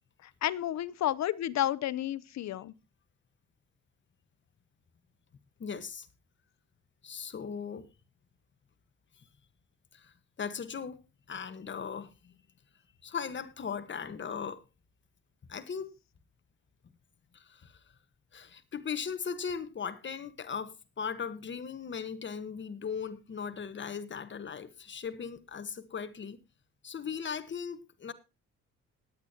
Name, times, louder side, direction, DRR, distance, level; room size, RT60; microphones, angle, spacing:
voice 1, 0.2-2.7, left 12 dB, 65° left, 0.7 m, -31 dB
voice 2, 5.6-6.1 7.0-7.9 9.9-11.0 11.3-12.3 13.0-14.6 15.5-15.9 17.3-17.8 18.3-26.4 26.8-28.1, left 6 dB, 40° left, 1.3 m, -38 dB
19.5 x 8.5 x 2.8 m
cardioid pair, 90°, 30 cm